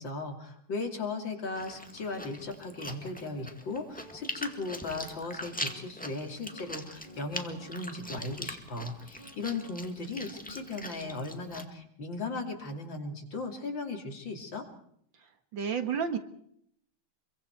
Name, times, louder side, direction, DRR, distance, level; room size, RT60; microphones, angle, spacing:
voice 1, 0.0-14.7, left 3 dB, 60° left, 4 dB, 3.5 m, -37 dB
Chewing mastication, 1.6-11.6, left 1 dB, 5° left, 1.6 m, -42 dB
sound 1, 3.2-8.6 9.2-9.9 10.3-11.2, right 1 dB, 20° left, 2.6 m, -54 dB
voice 2, 15.5-16.2, right 6 dB, 60° right, 8 dB, 2.2 m, -30 dB
26.0 x 23.0 x 4.6 m, 0.70 s
omnidirectional pair, 2.4 m